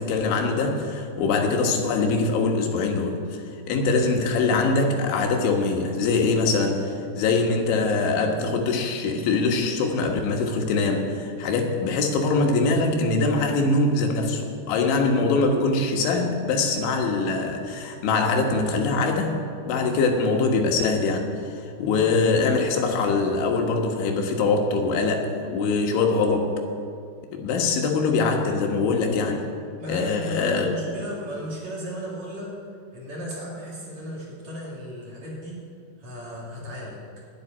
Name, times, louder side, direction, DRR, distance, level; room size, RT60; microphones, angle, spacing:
voice 1, 0.0-19.3 19.6-26.6 27.3-29.4 29.9-30.7, left 3 dB, 80° left, 2 dB, 3.7 m, -23 dB
voice 2, 29.8-35.6 36.0-37.0, right 1 dB, 45° right, -5 dB, 3.2 m, -35 dB
11.0 x 8.5 x 9.9 m, 2.3 s
omnidirectional pair, 5.5 m